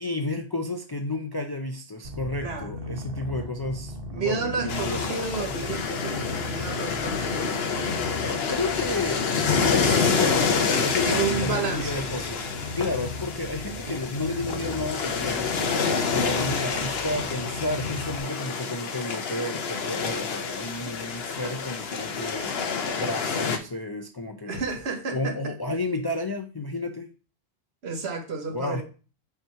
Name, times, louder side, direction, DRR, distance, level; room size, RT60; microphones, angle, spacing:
voice 1, 0.0-5.5 8.5-9.3 9.7-15.7 16.1-22.6 23.0-24.6 25.1-27.1 28.5-28.8, left 2 dB, 40° left, 0.3 m, -32 dB
Purr, 2.0-18.2, left 2 dB, 60° right, 1.2 m, -37 dB
voice 2, 2.4-2.7 4.1-7.5 11.0-12.1 24.5-25.5 27.8-28.8, right 5 dB, 75° right, 1.4 m, -31 dB
sound 1, 4.7-23.6, left 5 dB, 70° left, 1.0 m, -28 dB
5.6 x 3.0 x 5.5 m
omnidirectional pair, 1.1 m